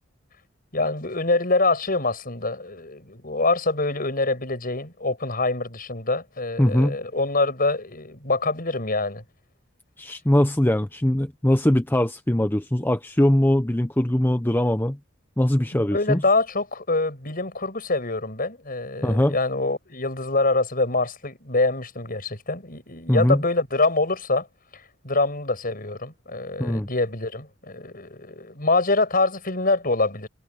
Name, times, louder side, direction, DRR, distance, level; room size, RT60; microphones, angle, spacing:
voice 1, 0.7-9.2 15.7-24.5 24.7-30.3, left 3 dB, 45° left, 7.7 m, -25 dB
voice 2, 6.6-7.0 10.0-15.0 15.4-16.2 19.0-19.4 23.1-23.4 26.6-26.9, left 1 dB, 10° left, 0.8 m, -21 dB
head